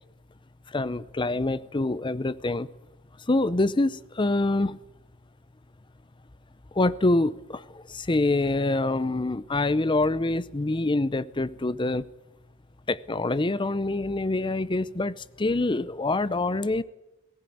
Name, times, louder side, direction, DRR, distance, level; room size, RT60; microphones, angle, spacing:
voice 1, 0.7-2.7 3.3-4.8 6.7-12.1 12.9-16.8, left 2 dB, 25° left, 0.6 m, -25 dB
18.5 x 15.5 x 9.4 m
head